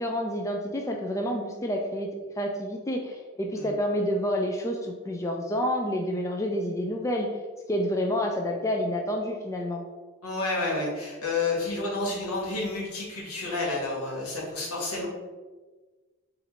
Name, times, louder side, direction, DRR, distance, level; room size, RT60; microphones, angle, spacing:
voice 1, 0.0-2.1 2.4-7.3 7.7-9.8, equal, 15° left, 1 dB, 0.3 m, -28 dB
voice 2, 10.2-15.1, left 3 dB, 85° left, -3 dB, 1.4 m, -30 dB
4.3 x 2.6 x 4.1 m, 1.3 s
head